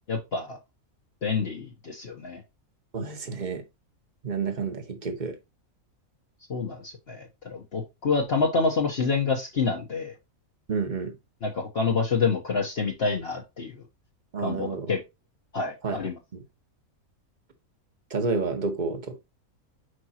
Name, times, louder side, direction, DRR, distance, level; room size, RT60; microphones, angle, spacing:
voice 1, 0.1-0.6 1.2-2.4 6.5-10.1 11.4-13.8 14.4-15.0 15.5-16.1, left 4 dB, 45° left, 1.2 m, -27 dB
voice 2, 2.9-3.6 4.2-5.4 10.7-11.2 14.3-14.9 15.8-16.0 16.3-16.4 18.1-19.2, right 4 dB, 35° right, 1.2 m, -30 dB
6.4 x 5.2 x 2.8 m
omnidirectional pair, 1.5 m